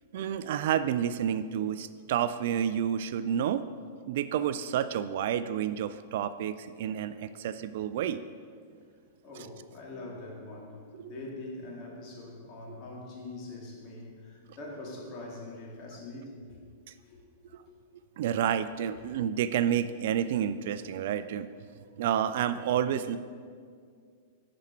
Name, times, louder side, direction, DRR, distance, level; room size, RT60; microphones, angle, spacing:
voice 1, 0.1-3.6 4.1-8.2 11.0-11.1 17.5-17.6 18.2-21.5 22.0-23.2, right 9 dB, 55° right, 13 dB, 0.3 m, -29 dB
voice 2, 9.2-16.6 17.0-17.2 17.6-17.7, left 2 dB, 40° left, -2 dB, 2.1 m, -43 dB
10.5 x 5.1 x 4.5 m, 2.1 s
figure-of-eight pair, 100°, 0 cm